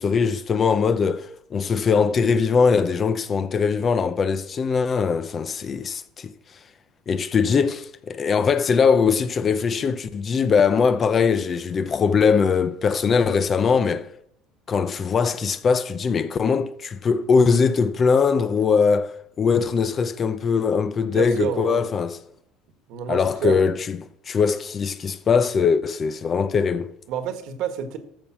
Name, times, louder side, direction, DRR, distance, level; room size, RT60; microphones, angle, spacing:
voice 1, 0.0-6.3 7.1-14.1 14.7-22.2 23.1-24.0 24.3-26.9, left 5 dB, 30° left, 0.5 m, -21 dB
voice 2, 21.1-21.9 22.9-23.6 27.1-28.0, right 8 dB, 60° right, 1.5 m, -29 dB
14.0 x 5.5 x 6.1 m
cardioid pair, 145°, 0 cm